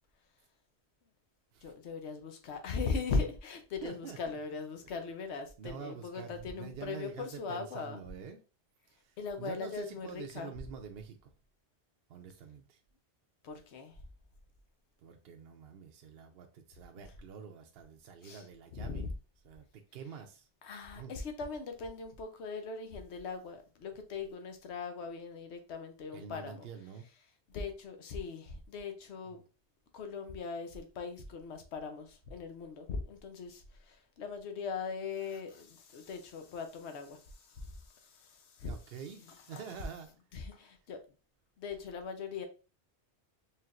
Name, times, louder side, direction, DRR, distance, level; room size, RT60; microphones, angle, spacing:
voice 1, 1.6-8.0 9.2-10.5 13.4-14.0 18.2-18.4 18.7-19.1 20.6-26.7 27.5-29.4 29.9-38.7 39.2-39.6 40.3-41.0 41.6-42.5, left 4 dB, 75° left, 6 dB, 1.0 m, -40 dB
voice 2, 3.8-4.3 5.6-8.4 8.9-11.3 12.1-12.8 15.0-19.1 19.4-20.5 21.0-21.1 26.1-27.1 38.6-40.1 40.5-40.7, right 7 dB, 65° right, 4 dB, 0.8 m, -47 dB
4.4 x 3.4 x 2.4 m, 0.33 s
omnidirectional pair, 1.2 m